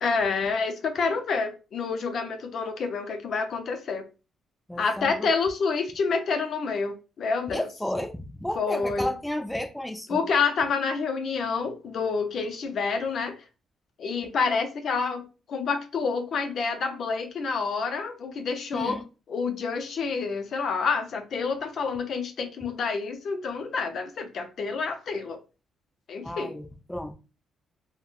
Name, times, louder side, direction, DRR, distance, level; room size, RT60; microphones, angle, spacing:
voice 1, 0.0-4.0 4.8-7.7 8.6-9.1 10.1-13.4 14.0-19.0 19.3-25.4 26.1-26.6, left 5 dB, 60° left, 0.5 m, -28 dB
voice 2, 4.7-5.3 7.5-10.2 18.7-19.1 26.2-27.1, left 1 dB, 5° left, 0.4 m, -32 dB
3.5 x 2.1 x 2.3 m
cardioid pair, 90°, 0 cm